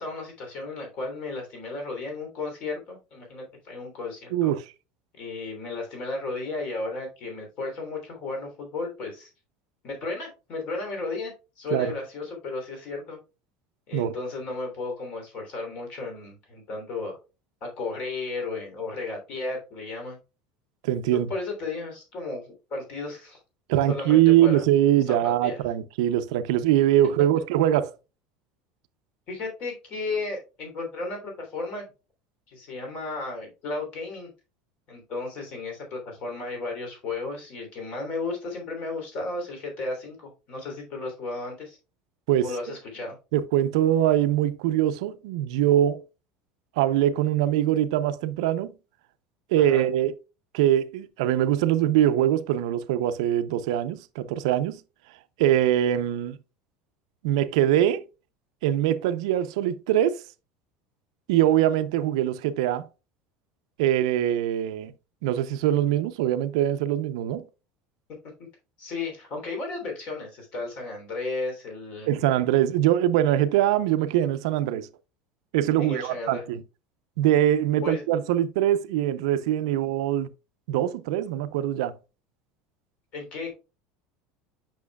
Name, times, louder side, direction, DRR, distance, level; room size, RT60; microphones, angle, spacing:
voice 1, 0.0-4.5 5.1-9.3 9.8-13.2 13.9-17.2 17.6-20.2 21.1-23.4 23.9-24.6 25.1-25.6 29.3-31.9 32.5-34.3 34.9-41.8 42.4-43.2 49.6-49.8 68.8-72.1 75.8-76.4 77.8-78.0 83.1-83.5, left 3 dB, 40° left, 3.1 m, -34 dB
voice 2, 4.3-4.7 11.7-11.9 13.9-14.1 20.8-21.3 23.7-27.9 42.3-42.7 43.3-46.0 46.8-48.7 49.5-50.1 50.5-54.8 55.4-56.4 57.2-58.0 58.6-60.2 61.3-62.9 63.8-64.9 65.2-67.4 72.1-74.9 75.5-76.6 77.2-80.3 80.7-81.9, right 12 dB, 80° right, 0.6 m, -23 dB
8.5 x 6.0 x 2.3 m
cardioid pair, 175°, 3 cm